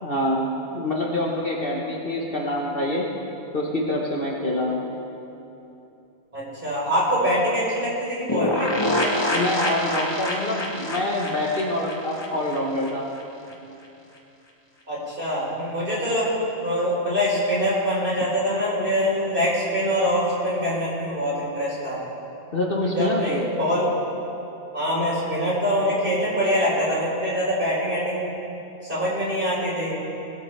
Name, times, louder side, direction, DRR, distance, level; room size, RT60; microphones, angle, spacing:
voice 1, 0.0-3.1 3.5-4.8 9.3-13.1 22.5-23.5, left 1 dB, 45° left, -2 dB, 1.4 m, -26 dB
voice 2, 6.3-8.8 14.9-16.3 16.6-22.0 22.9-23.9 24.7-28.3 28.8-29.9, equal, 40° right, -6 dB, 4.1 m, -24 dB
sound 1, 8.3-12.9 13.2-13.3 13.5-13.6, left 1 dB, 20° left, 1.2 m, -26 dB
19.5 x 13.5 x 3.3 m, 2.9 s
omnidirectional pair, 1.4 m